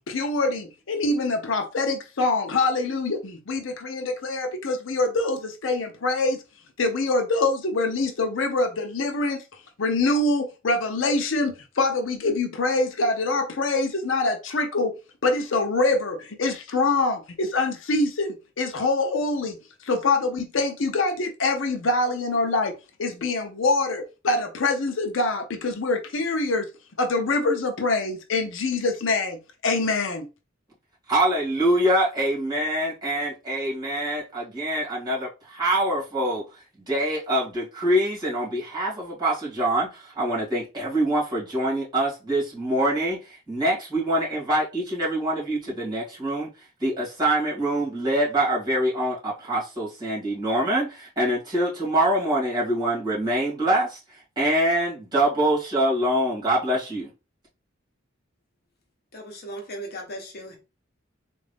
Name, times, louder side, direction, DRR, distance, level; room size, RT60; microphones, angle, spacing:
voice 1, 0.1-6.4 6.8-9.4 9.8-14.9 15.2-19.6 19.8-22.7 23.0-26.7 27.0-29.4 29.6-30.3, left 3 dB, 75° left, 0.6 m, -24 dB
voice 2, 31.1-36.4 36.9-46.5 46.8-54.0 54.4-57.1, right 1 dB, 20° right, 2.3 m, -24 dB
voice 3, 59.1-60.6, right 1 dB, 50° left, 1.1 m, -37 dB
3.8 x 2.5 x 3.4 m
head